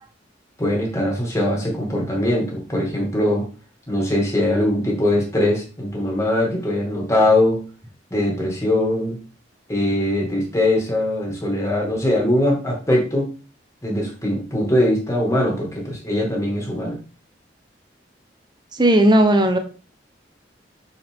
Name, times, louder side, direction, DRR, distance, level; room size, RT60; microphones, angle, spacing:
voice 1, 0.6-3.5 3.9-7.6 8.1-9.2 9.7-13.3 13.8-17.0, left 1 dB, 15° left, -1 dB, 2.5 m, -21 dB
voice 2, 18.8-19.6, right 1 dB, 25° right, 6 dB, 1.0 m, -15 dB
6.4 x 5.7 x 3.6 m, 0.33 s
head